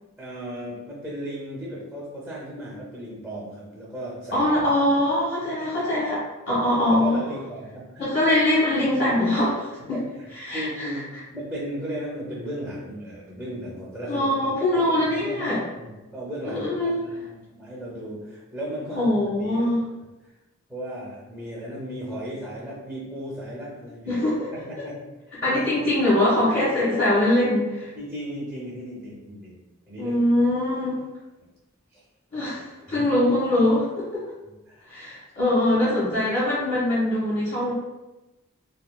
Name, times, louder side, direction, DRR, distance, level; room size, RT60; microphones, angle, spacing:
voice 1, 0.2-4.5 6.5-6.6 6.9-8.1 9.8-19.6 20.7-24.2 24.6-25.1 25.4-25.6 27.9-29.6 29.9-30.2 31.9-32.0 32.9-33.1 34.7-34.9, equal, ahead, -6 dB, 0.7 m, -36 dB
voice 2, 4.3-6.2 6.5-7.2 8.0-10.0 10.4-10.9 14.1-15.6 16.5-17.0 18.9-19.8 24.1-24.5 24.8-24.9 25.4-27.9 30.0-31.0 32.3-32.6 32.9-34.2 34.9-37.7, left 1 dB, 50° left, -10 dB, 1.1 m, -22 dB
3.6 x 2.5 x 2.2 m, 1.1 s
head